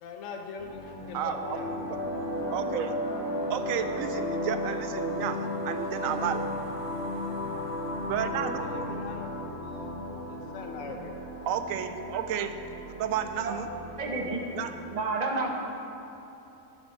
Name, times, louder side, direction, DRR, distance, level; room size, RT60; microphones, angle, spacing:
voice 1, 0.0-1.7 8.6-9.9 10.3-11.1, left 5 dB, 70° left, 3 dB, 1.1 m, -42 dB
sound 1, 0.6-14.8, equal, 30° left, 1.7 m, -44 dB
sound 2, 1.3-12.3, left 1 dB, 45° left, 1.2 m, -34 dB
voice 2, 2.5-2.9 3.5-6.4 8.1-8.7 11.5-12.5 13.0-13.7 14.5-14.7, right 9 dB, 75° right, 8 dB, 1.0 m, -31 dB
voice 3, 14.0-14.5 14.9-15.5, right 3 dB, 35° right, 0 dB, 0.9 m, -30 dB
8.8 x 6.7 x 5.4 m, 2.9 s
omnidirectional pair, 1.4 m